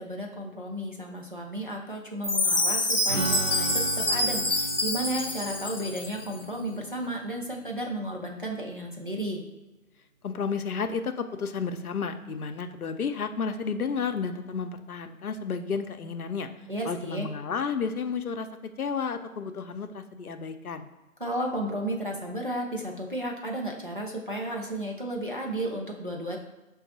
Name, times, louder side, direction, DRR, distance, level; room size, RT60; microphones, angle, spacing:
voice 1, 0.0-9.4 16.7-17.3 21.2-26.4, right 1 dB, 40° right, -1 dB, 0.5 m, -33 dB
Chime, 2.2-6.2, left 1 dB, 45° left, 0.6 m, -27 dB
Strum, 3.1-8.7, right 3 dB, 65° right, 0.9 m, -37 dB
voice 2, 10.2-16.5 16.8-20.9, left 5 dB, 85° left, 8 dB, 0.5 m, -32 dB
5.9 x 2.3 x 3.9 m, 1.1 s
figure-of-eight pair, 160°, 42 cm